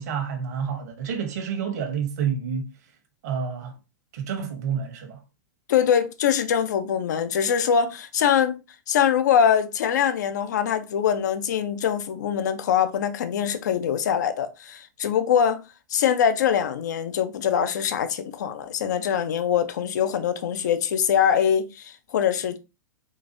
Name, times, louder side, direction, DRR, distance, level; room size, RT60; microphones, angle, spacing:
voice 1, 0.0-2.7 3.2-3.7 4.1-5.2, right 7 dB, 60° right, 0.9 m, -29 dB
voice 2, 5.7-8.6 8.9-15.6 15.9-22.6, left 8 dB, 65° left, 0.5 m, -23 dB
3.8 x 2.5 x 2.6 m
hypercardioid pair, 105°, 10 cm